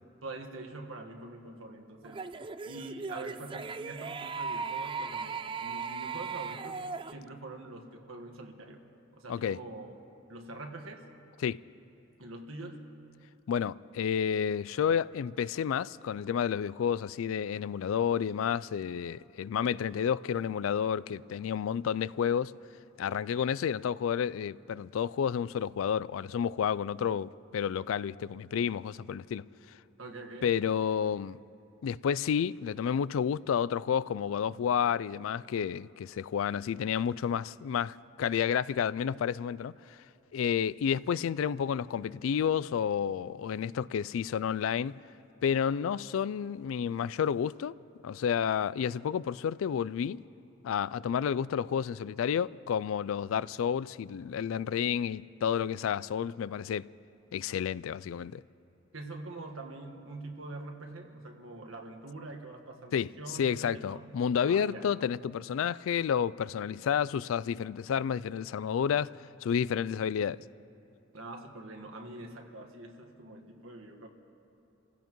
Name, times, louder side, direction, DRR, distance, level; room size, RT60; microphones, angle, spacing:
voice 1, 0.2-2.2 2.7-8.8 9.2-9.9 10.3-11.0 12.2-12.9 30.0-30.5 58.9-64.1 64.5-64.9 71.1-74.1, right 2 dB, 75° right, 1.5 m, -44 dB
sound 1, 2.0-7.1, right 5 dB, 25° right, 0.3 m, -37 dB
voice 2, 13.5-22.5 23.0-29.4 30.4-31.4 31.8-39.7 40.3-45.0 45.4-47.7 48.0-50.2 50.6-56.9 57.3-58.4 62.9-63.1 63.4-69.1 69.4-70.4, left 8 dB, 70° left, 0.3 m, -30 dB
29.0 x 16.0 x 3.1 m
head